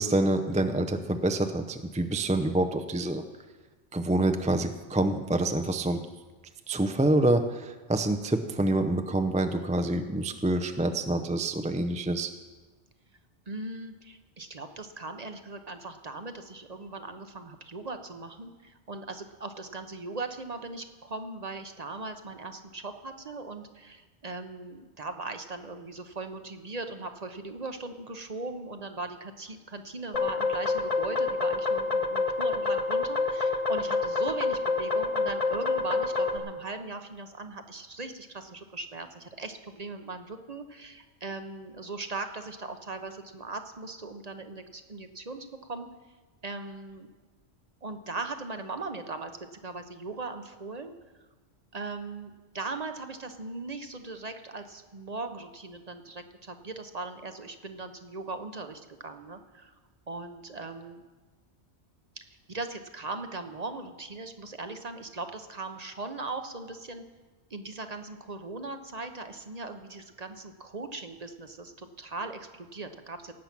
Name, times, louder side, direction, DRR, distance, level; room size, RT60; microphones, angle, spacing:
voice 1, 0.0-3.2 3.9-6.0 6.7-12.3, right 2 dB, 10° right, 7 dB, 0.5 m, -27 dB
voice 2, 13.5-45.9 46.4-47.1 47.8-50.9 51.7-59.7 60.1-61.0 62.5-67.0 67.5-73.3, right 3 dB, 40° right, 7 dB, 0.9 m, -39 dB
sound 1, 30.1-36.4, left 3 dB, 35° left, 0.9 m, -27 dB
17.5 x 8.7 x 6.0 m, 1.3 s
omnidirectional pair, 1.2 m